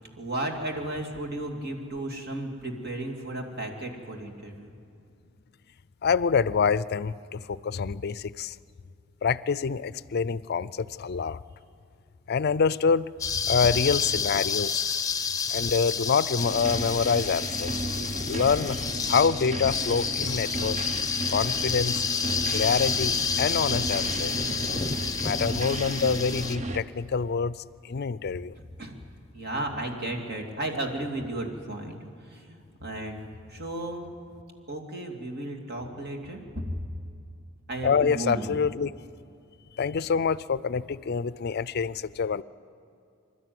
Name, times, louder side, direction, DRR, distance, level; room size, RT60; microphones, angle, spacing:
voice 1, 0.2-4.7 28.8-29.0 29.3-32.0 32.3-33.2 33.5-34.0 34.7-36.8 37.7-38.5, right 1 dB, 50° right, 2 dB, 2.5 m, -34 dB
voice 2, 6.0-8.6 9.2-11.4 12.3-13.1 13.5-14.8 15.5-17.8 18.3-18.8 19.1-20.8 21.3-22.0 22.5-24.3 25.2-27.6 27.8-28.6 37.8-38.9 39.8-42.4, left 5 dB, 50° left, 18 dB, 0.4 m, -26 dB
sound 1, 13.2-26.6, left 6 dB, 15° left, 0.8 m, -29 dB
sound 2, 16.4-26.8, right 2 dB, 35° right, 0.8 m, -34 dB
26.5 x 12.5 x 9.4 m, 2.5 s
head